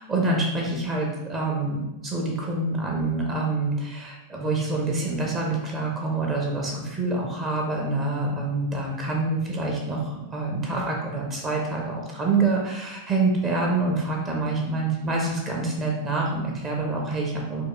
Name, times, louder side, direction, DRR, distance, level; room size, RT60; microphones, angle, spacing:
voice 1, 0.0-17.6, right 3 dB, 25° right, -1 dB, 0.6 m, -26 dB
4.5 x 2.3 x 2.3 m, 0.97 s
figure-of-eight pair, 90°, 0 cm